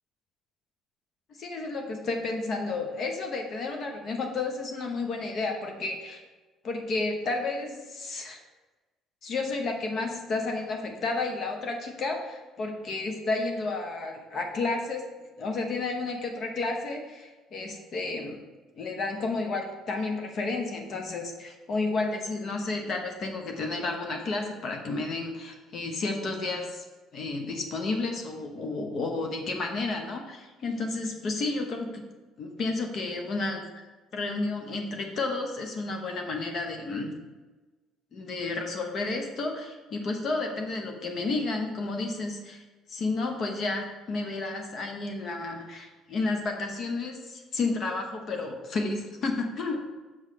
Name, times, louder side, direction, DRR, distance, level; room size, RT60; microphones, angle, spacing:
voice 1, 1.4-6.2 6.6-8.4 9.2-15.0 15.4-18.4 18.8-26.8 27.1-32.0 32.4-33.7 34.1-37.1 38.1-42.6 42.9-49.8, left 3 dB, 50° left, 3 dB, 0.9 m, -31 dB
6.3 x 3.2 x 5.7 m, 1.2 s
cardioid pair, 100°, 0 cm